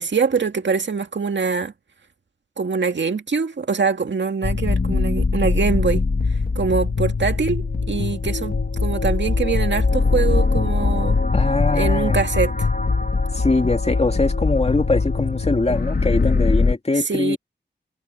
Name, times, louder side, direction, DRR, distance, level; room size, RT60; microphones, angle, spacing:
voice 1, 0.0-1.7 2.6-6.0 6.6-11.2 11.7-12.5 17.1-17.4, right 5 dB, 70° right, 2.1 m, -23 dB
sound 1, 4.4-16.7, left 4 dB, 50° left, 1.7 m, -21 dB
voice 2, 11.3-12.2 13.3-17.4, left 2 dB, 35° left, 2.5 m, -22 dB
wide cardioid pair, 105°, 19 cm